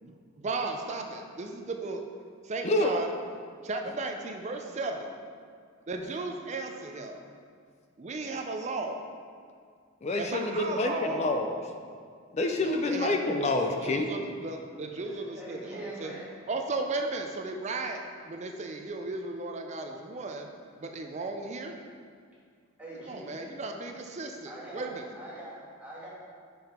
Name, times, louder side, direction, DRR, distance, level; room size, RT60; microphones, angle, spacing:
voice 1, 0.0-2.0 2.4-3.1 3.6-5.1 5.9-7.2 8.0-9.0 10.2-11.2 12.6-13.1 13.8-16.1 16.5-20.5 20.8-21.8 23.0-25.1, right 3 dB, 35° right, 3 dB, 0.4 m, -35 dB
voice 2, 10.0-11.6 12.3-14.0, left 2 dB, 30° left, 4 dB, 0.4 m, -27 dB
voice 3, 15.0-16.3 22.8-23.6 24.4-26.1, right 1 dB, 5° right, -8 dB, 1.5 m, -44 dB
5.7 x 5.3 x 4.3 m, 2.1 s
head